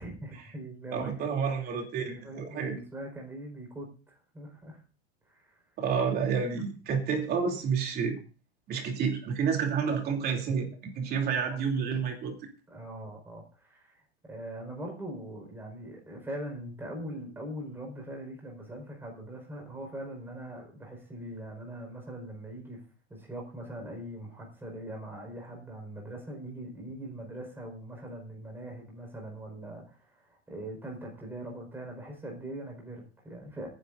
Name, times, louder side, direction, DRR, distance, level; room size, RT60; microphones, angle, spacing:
voice 1, 0.0-1.5 2.1-4.8 5.3-5.5 11.4-11.6 12.7-22.8 23.1-33.7, right 1 dB, 5° right, 0 dB, 4.8 m, -42 dB
voice 2, 0.9-2.7 5.8-8.2 8.7-12.3, right 6 dB, 30° right, 2 dB, 3.0 m, -29 dB
25.0 x 10.0 x 2.6 m, 0.35 s
supercardioid pair, 150°, 33 cm